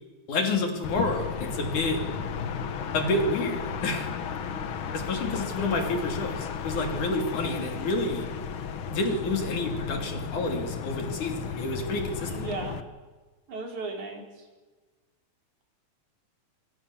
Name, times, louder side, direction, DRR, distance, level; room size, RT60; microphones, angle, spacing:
voice 1, 0.3-2.0 2.9-4.1 4.9-8.3 8.9-12.5, left 2 dB, 85° left, 4 dB, 4.6 m, -29 dB
sound 1, 0.8-12.8, left 7 dB, 55° left, 1.6 m, -34 dB
voice 2, 12.2-12.8 13.5-14.5, right 3 dB, 75° right, 2 dB, 5.7 m, -36 dB
25.0 x 24.5 x 7.3 m, 1.3 s
omnidirectional pair, 3.4 m